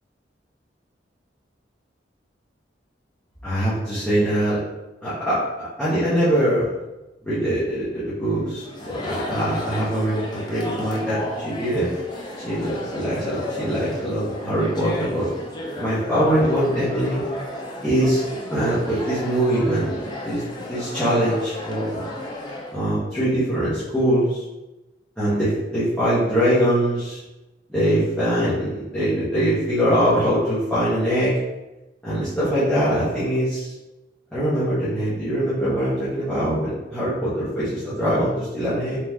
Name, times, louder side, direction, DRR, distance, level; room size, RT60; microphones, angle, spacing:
voice 1, 3.4-4.6 5.0-6.7 7.2-11.9 12.4-15.3 15.7-17.2 17.8-18.2 18.5-20.4 20.7-22.0 22.7-24.4 25.2-27.2 27.7-31.3 32.0-33.7 34.3-39.0, equal, 5° left, -14 dB, 1.3 m, -22 dB
Chatter, 8.6-22.8, left 1 dB, 25° left, 0.6 m, -33 dB
3.9 x 3.1 x 3.6 m, 1.0 s
head